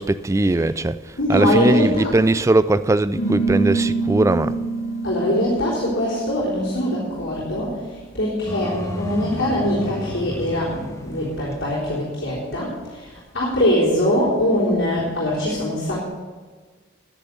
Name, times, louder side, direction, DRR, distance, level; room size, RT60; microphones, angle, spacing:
voice 1, 0.0-4.6, right 2 dB, 15° right, 0.3 m, -20 dB
voice 2, 1.2-2.1 5.0-7.7 8.2-12.7 13.0-13.1 13.3-16.1, left 1 dB, 60° left, 3.7 m, -22 dB
sound 1, 3.1-8.1, right 3 dB, 35° left, 3.0 m, -26 dB
sound 2, 8.5-12.6, left 1 dB, 15° left, 0.8 m, -34 dB
10.0 x 9.9 x 6.9 m
head